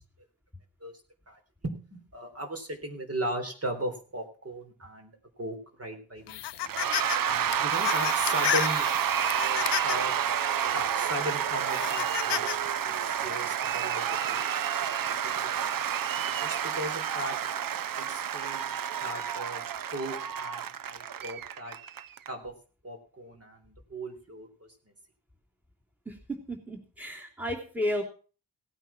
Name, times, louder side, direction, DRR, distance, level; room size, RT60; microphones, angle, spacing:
voice 1, 1.3-6.5 7.2-8.9 9.3-10.1 10.7-12.6 12.8-14.4 14.8-15.8 16.2-17.4 17.9-18.7 19.0-19.6 19.9-21.8 22.3-22.5 22.8-24.7, right 1 dB, 35° right, 4 dB, 3.8 m, -37 dB
sound 1, 6.3-7.2 7.5-10.1 10.7-10.8 11.7-12.6, left 14 dB, 90° left, 0.6 m, -32 dB
Cheering / Applause / Crowd, 6.6-22.3, right 9 dB, 55° right, 0.7 m, -30 dB
voice 2, 26.5-28.0, left 1 dB, 5° right, 3 dB, 3.1 m, -32 dB
17.5 x 9.0 x 5.9 m, 0.39 s
wide cardioid pair, 110°, 40 cm